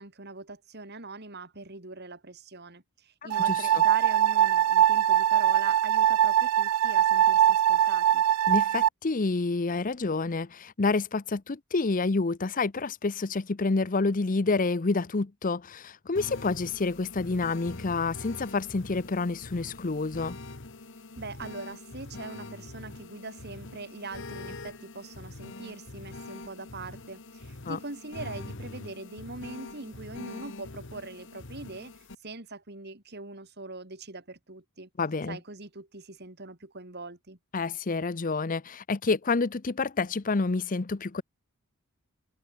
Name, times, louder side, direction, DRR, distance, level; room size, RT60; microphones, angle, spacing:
voice 1, 0.0-8.2 21.2-31.9 32.2-34.9 35.3-37.4, right 3 dB, 50° right, 2.9 m, -42 dB
sound 1, 3.3-8.9, right 10 dB, 80° right, 0.3 m, -22 dB
voice 2, 3.5-3.8 8.5-20.4 27.6-27.8 35.0-35.4 37.5-41.2, left 3 dB, 40° left, 0.6 m, -28 dB
sound 2, 16.2-32.2, left 2 dB, 60° left, 1.6 m, -44 dB
head